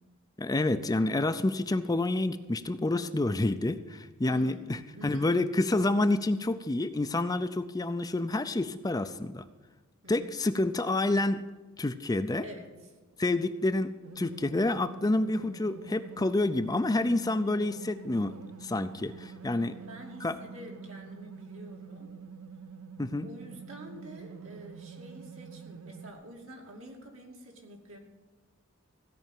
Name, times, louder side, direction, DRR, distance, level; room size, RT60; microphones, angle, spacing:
voice 1, 0.4-9.4 10.1-11.4 11.8-12.5 13.2-18.3 18.6-19.8 20.2-20.4 23.0-23.3, left 2 dB, 20° left, 10 dB, 0.5 m, -28 dB
voice 2, 4.3-5.4 10.0-10.4 12.4-12.9 13.2-13.4 19.8-22.1 23.2-28.0, right 1 dB, 70° right, 0 dB, 2.7 m, -47 dB
sound 1, 14.0-26.1, right 6 dB, 90° right, 0.6 m, -47 dB
16.0 x 5.6 x 9.1 m, 1.2 s
head